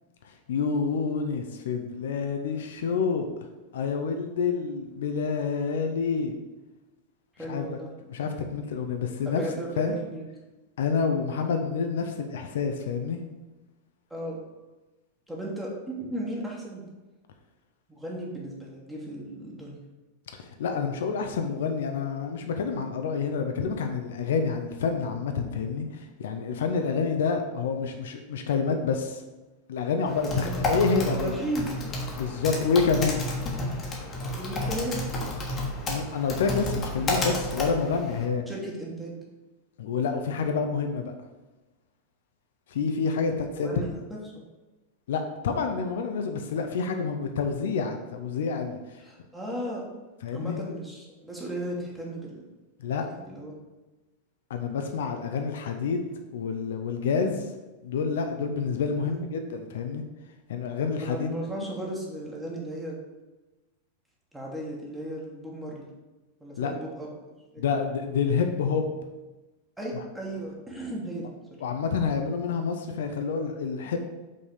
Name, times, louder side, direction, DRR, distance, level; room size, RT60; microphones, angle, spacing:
voice 1, 0.2-3.3 3.7-6.4 7.4-7.7 8.1-9.4 9.8-10.0 10.8-13.2 20.4-29.2 29.7-31.3 32.2-33.2 35.9-38.4 39.8-41.1 42.7-43.7 45.1-48.8 50.2-50.6 52.8-53.0 54.5-57.5 57.8-60.0 60.5-61.3 61.5-61.7 66.6-66.7 67.6-68.9 69.9-70.0 71.6-74.0, left 5 dB, 60° left, 5 dB, 0.6 m, -28 dB
voice 2, 7.3-7.9 9.2-10.2 14.1-14.4 15.3-16.8 17.9-19.8 30.3-30.5 31.2-31.8 34.4-35.0 38.5-39.2 43.1-44.4 49.0-49.9 50.3-52.4 53.1-53.5 59.0-59.3 61.0-63.0 64.3-65.8 66.4-67.1 67.5-67.6 69.8-71.3, right 1 dB, 5° right, -3 dB, 1.6 m, -35 dB
Typing, 30.1-38.3, left 1 dB, 25° left, 1.3 m, -31 dB
5.5 x 4.1 x 4.9 m, 1.1 s
figure-of-eight pair, 90°, 0 cm